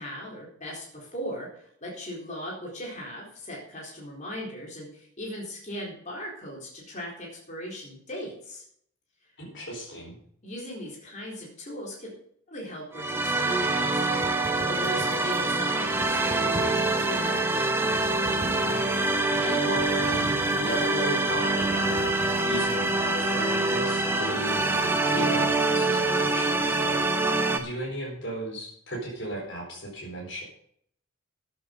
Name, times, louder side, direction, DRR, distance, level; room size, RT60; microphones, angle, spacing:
voice 1, 0.0-8.6 10.4-12.1 12.5-17.5, equal, 35° left, -3 dB, 4.1 m, -38 dB
voice 2, 9.4-10.2 19.3-22.2 22.5-30.4, right 1 dB, 50° left, -2 dB, 4.4 m, -36 dB
sound 1, 12.9-27.6, right 2 dB, 10° right, 1.1 m, -25 dB
sound 2, 14.2-15.6 15.9-17.4 17.8-19.2 19.7-21.1 21.4-23.2, equal, 15° left, 4.6 m, -41 dB
13.0 x 8.9 x 5.3 m, 0.65 s
head